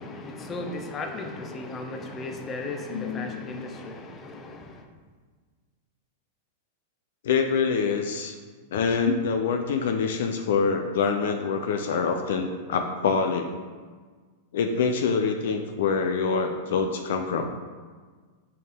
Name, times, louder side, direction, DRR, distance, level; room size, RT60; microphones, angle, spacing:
voice 1, 0.0-4.9, left 2 dB, 25° left, 0.8 m, -36 dB
voice 2, 2.9-3.4 7.2-8.4 8.7-13.5 14.5-17.5, left 5 dB, 70° left, 0.5 m, -25 dB
6.2 x 4.4 x 3.5 m
hypercardioid pair, 110°, 0 cm